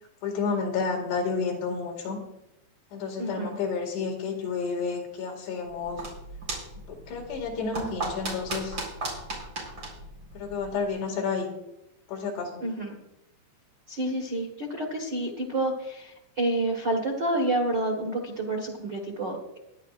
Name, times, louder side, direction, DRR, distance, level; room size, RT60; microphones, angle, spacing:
voice 1, 0.2-2.2 2.9-6.0 6.9-8.8 10.3-11.5 12.1-12.6, left 5 dB, 75° left, 1 dB, 4.3 m, -30 dB
voice 2, 3.2-3.5 12.6-12.9 13.9-19.4, right 1 dB, 75° right, 1 dB, 0.9 m, -29 dB
sound 1, 5.6-11.0, right 2 dB, 30° right, 4.7 m, -37 dB
22.5 x 11.0 x 2.5 m, 0.87 s
omnidirectional pair, 4.8 m